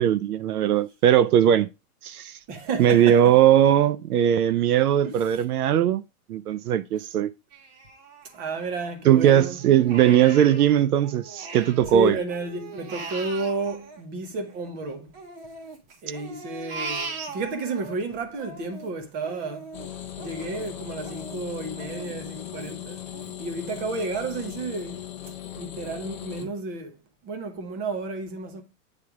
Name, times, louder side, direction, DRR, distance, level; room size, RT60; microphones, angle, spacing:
voice 1, 0.0-1.7 2.0-2.4 2.8-6.0 6.3-7.3 9.1-12.2, right 10 dB, 70° right, 0.6 m, -19 dB
voice 2, 2.5-3.3 5.0-5.2 8.3-9.6 11.8-15.1 16.0-19.7 20.2-23.0 23.4-25.0 25.6-27.0 27.2-28.6, right 3 dB, 20° right, 0.9 m, -31 dB
Crying sobbing, 7.5-9.2 9.6-12.0 12.3-14.7 15.1-17.9 18.3-23.8 24.2-24.3 24.8-25.3 25.8-25.9 26.4-26.5, right 4 dB, 40° right, 1.3 m, -40 dB
sound 1, 19.7-26.4, left 11 dB, 20° left, 0.6 m, -38 dB
8.7 x 3.3 x 4.7 m
hypercardioid pair, 155°, 46 cm